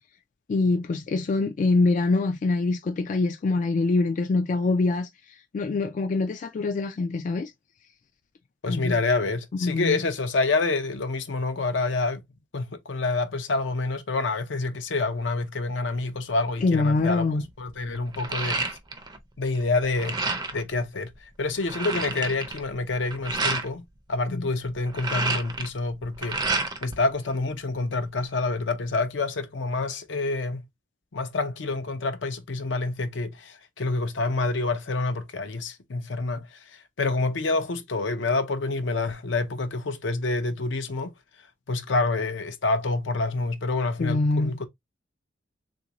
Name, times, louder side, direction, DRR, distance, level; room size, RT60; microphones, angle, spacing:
voice 1, 0.5-5.1 5.5-7.5 8.7-9.0 9.6-10.0 16.6-17.4 24.4-24.5 44.0-44.6, left 3 dB, 45° left, 0.3 m, -24 dB
voice 2, 8.6-12.2 12.5-17.3 17.6-18.6 19.4-20.2 20.5-21.1 21.4-26.4 26.8-30.7 31.1-41.1 41.7-44.7, left 3 dB, 75° left, 0.6 m, -27 dB
sound 1, 17.0-17.1 17.4-19.2 19.5-20.7 21.2-21.3 21.4-23.7 24.7-27.0 27.3-28.2, right 3 dB, 20° right, 0.5 m, -30 dB
3.5 x 2.5 x 2.9 m
head